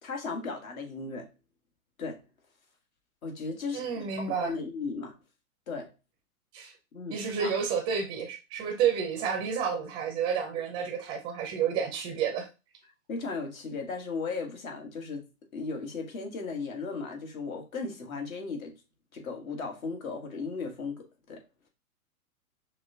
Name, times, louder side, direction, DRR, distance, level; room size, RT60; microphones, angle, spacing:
voice 1, 0.0-1.3 2.0-2.2 3.2-3.8 4.2-5.1 5.7-5.9 6.9-7.5 13.1-15.3 15.5-18.8 19.1-21.4, left 4 dB, 65° left, 1.5 m, -36 dB
voice 2, 3.7-4.6 6.5-6.7 7.1-12.5, right 7 dB, 10° right, 0.4 m, -30 dB
6.0 x 2.2 x 2.7 m
hypercardioid pair, 120°, 44 cm